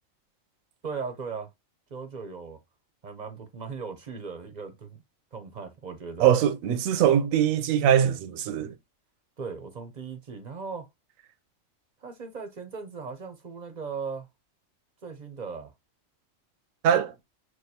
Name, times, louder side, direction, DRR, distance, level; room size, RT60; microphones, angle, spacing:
voice 1, 0.8-1.5 1.9-2.6 3.0-5.0 5.3-6.3 9.4-10.9 12.0-14.3 15.0-15.7, right 5 dB, 45° right, 0.6 m, -38 dB
voice 2, 6.2-8.7 16.8-17.1, right 9 dB, 85° right, 1.0 m, -22 dB
6.3 x 2.3 x 2.7 m
omnidirectional pair, 1.4 m